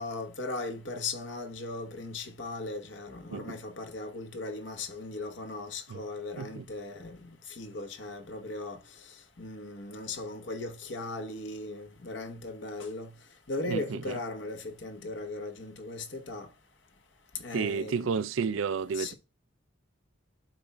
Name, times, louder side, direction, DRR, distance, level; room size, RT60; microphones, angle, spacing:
voice 1, 0.0-8.8 9.4-13.1 13.5-16.5 17.4-18.1 18.9-19.1, left 2 dB, 65° left, 1.1 m, -38 dB
voice 2, 13.7-14.1 17.5-19.1, right 6 dB, 75° right, 0.4 m, -31 dB
12.0 x 4.2 x 2.2 m
head